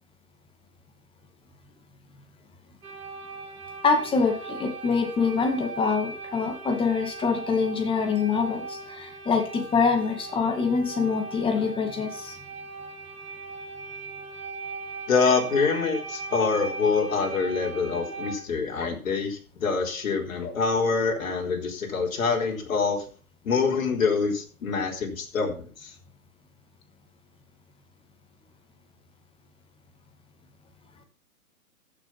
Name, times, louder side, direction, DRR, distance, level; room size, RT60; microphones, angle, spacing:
sound 1, 2.8-18.4, right 3 dB, 80° right, 2.9 m, -39 dB
voice 1, 3.8-12.3, left 5 dB, 10° left, 6 dB, 2.0 m, -25 dB
voice 2, 15.1-23.0 23.4-25.9, left 4 dB, 65° left, 2 dB, 4.2 m, -25 dB
15.0 x 6.5 x 5.8 m, 0.40 s
hypercardioid pair, 130°, 44 cm